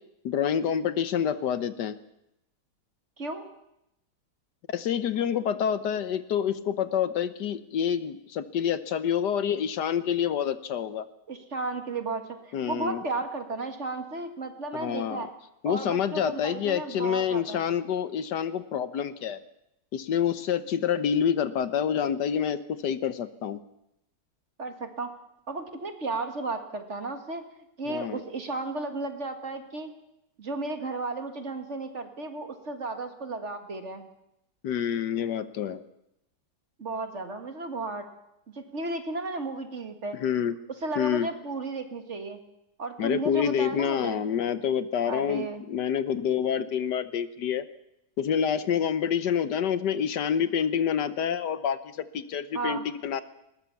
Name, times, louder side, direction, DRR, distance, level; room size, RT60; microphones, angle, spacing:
voice 1, 0.2-2.0 4.7-11.1 12.5-13.0 14.7-15.3 15.6-19.4 19.9-23.6 27.9-28.2 34.6-35.8 40.2-40.6 41.0-41.3 43.0-47.6 48.2-53.2, left 8 dB, 75° left, 13 dB, 1.5 m, -27 dB
voice 2, 3.2-3.5 11.3-15.3 15.6-17.6 24.6-25.1 25.5-29.9 30.4-34.1 36.8-38.1 38.5-40.2 40.8-42.4 42.8-44.2 45.1-45.6 52.5-52.8, right 3 dB, 40° right, 6 dB, 2.0 m, -34 dB
20.0 x 19.0 x 7.1 m, 0.84 s
omnidirectional pair, 1.9 m